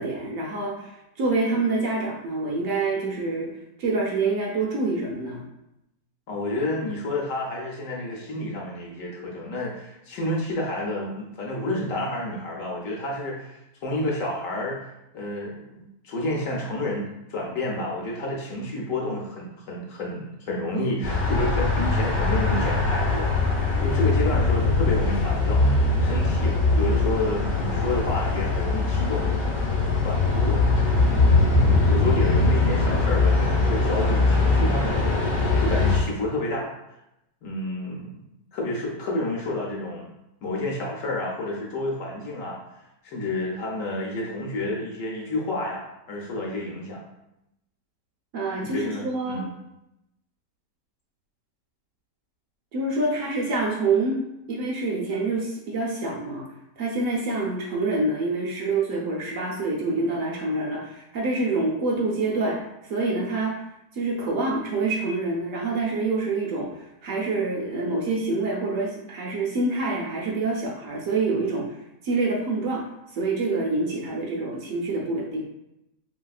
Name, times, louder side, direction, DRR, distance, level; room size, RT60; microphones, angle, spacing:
voice 1, 0.0-3.5 3.8-5.4 31.7-31.8 48.3-49.4 52.7-54.2 54.5-56.4 56.8-63.6 63.9-66.7 67.0-71.7 72.0-72.8 73.1-75.4, right 3 dB, 70° right, -3 dB, 0.9 m, -26 dB
voice 2, 6.3-14.9 15.1-25.6 26.0-29.3 29.8-30.6 31.4-36.7 37.4-38.2 38.5-40.1 40.4-42.6 43.0-47.0 48.6-49.5, left 1 dB, 65° left, -2 dB, 0.9 m, -30 dB
sound 1, 21.0-36.0, left 3 dB, 40° left, 0.7 m, -21 dB
3.1 x 2.8 x 2.3 m, 0.87 s
omnidirectional pair, 1.6 m